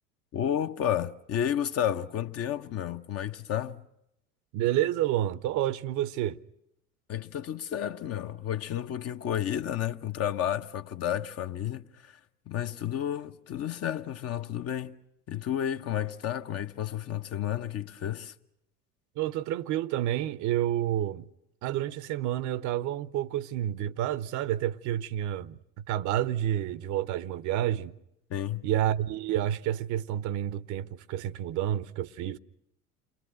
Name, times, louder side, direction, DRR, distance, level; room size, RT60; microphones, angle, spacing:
voice 1, 0.3-3.8 7.1-12.2 12.5-14.9 15.3-18.3 28.3-28.6, left 10 dB, 35° left, 1.0 m, -31 dB
voice 2, 4.5-6.4 19.2-21.3 21.6-25.6 25.9-27.9 28.6-32.4, right 12 dB, 40° right, 0.9 m, -29 dB
29.0 x 23.0 x 6.5 m
figure-of-eight pair, 70°, 45 cm